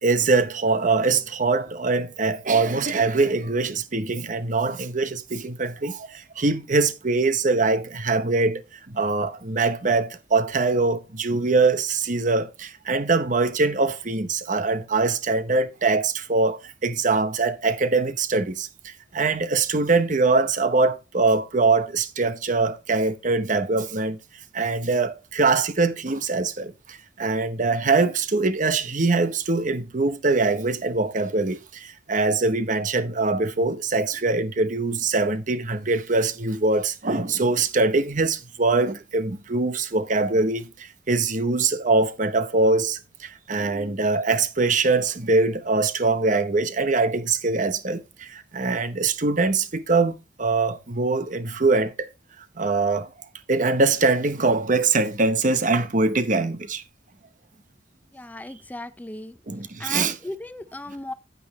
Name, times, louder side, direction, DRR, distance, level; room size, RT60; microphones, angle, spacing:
voice 1, 0.0-24.2 24.5-52.1 52.6-53.1 53.5-56.8 59.5-60.1, right 3 dB, 45° right, 0.9 m, -23 dB
voice 2, 58.1-59.4 59.8-61.1, left 1 dB, 10° left, 0.5 m, -36 dB
9.4 x 8.4 x 3.1 m
head